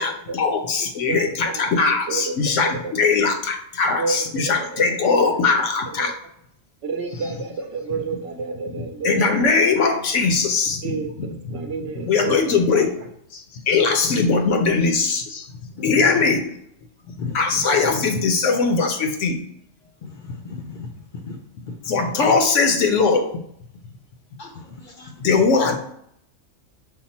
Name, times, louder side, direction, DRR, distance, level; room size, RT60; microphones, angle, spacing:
voice 1, 0.0-6.1 9.0-11.3 11.8-12.9 13.3-16.4 17.1-19.4 21.8-23.3 25.2-25.8, left 4 dB, 80° left, 5 dB, 1.0 m, -20 dB
voice 2, 1.1-1.8 2.1-2.2 2.8-3.1 4.0-5.0 6.0-6.1 6.8-9.5 10.8-12.8, right 4 dB, 65° right, 5 dB, 0.8 m, -30 dB
voice 3, 15.8-16.2 17.2-17.6 20.0-20.9 21.2-21.4 21.9-22.0 24.4-25.1, left 4 dB, 55° left, 3 dB, 0.6 m, -35 dB
5.7 x 2.1 x 4.1 m, 0.72 s
omnidirectional pair, 1.3 m